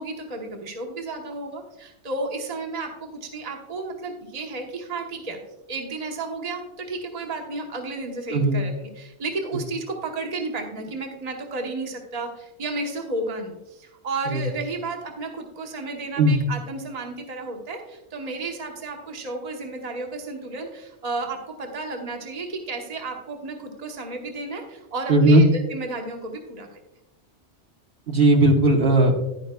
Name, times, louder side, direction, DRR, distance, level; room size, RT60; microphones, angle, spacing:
voice 1, 0.0-5.4 5.7-26.8, right 3 dB, 35° right, 2 dB, 1.1 m, -32 dB
voice 2, 25.1-25.5 28.1-29.1, right 1 dB, 55° right, 0 dB, 1.2 m, -16 dB
10.5 x 9.8 x 2.2 m, 0.95 s
omnidirectional pair, 1.2 m